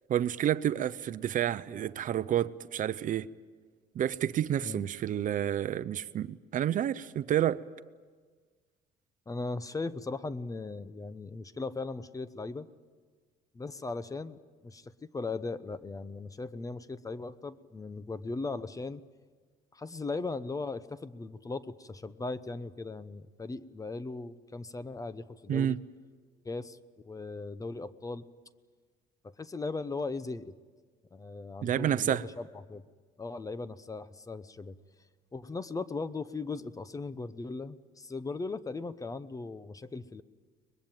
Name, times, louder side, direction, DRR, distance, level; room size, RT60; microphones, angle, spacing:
voice 1, 0.1-3.3 3.9-7.6 25.5-25.8 31.6-32.2, right 10 dB, 50° right, 0.7 m, -29 dB
voice 2, 9.3-12.7 13.5-19.0 19.7-25.8 26.4-26.8 27.0-28.2 29.2-30.5 31.1-32.8 33.2-34.8 35.3-40.2, left 3 dB, 20° left, 0.8 m, -38 dB
23.5 x 20.5 x 9.0 m
cardioid pair, 110°, 17 cm